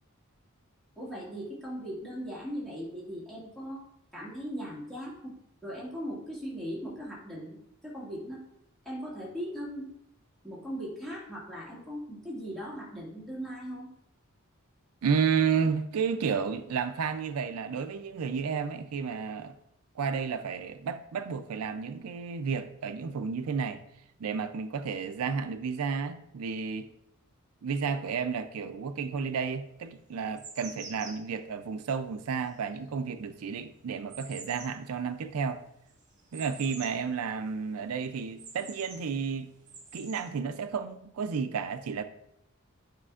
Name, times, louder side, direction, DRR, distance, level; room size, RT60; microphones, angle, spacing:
voice 1, 1.0-3.9 4.1-5.4 5.6-8.5 8.9-9.9 10.4-13.9, equal, ahead, 1.9 m, -39 dB
voice 2, 15.0-19.5 20.0-23.8 24.2-26.9 27.6-35.6 36.3-39.5 39.9-42.0, right 6 dB, 85° right, 0.4 m, -32 dB
sound 1, 29.9-37.1 37.4-37.5 37.9-39.1 39.5-40.3, right 4 dB, 35° right, 1.6 m, -48 dB
9.9 x 5.1 x 2.4 m
head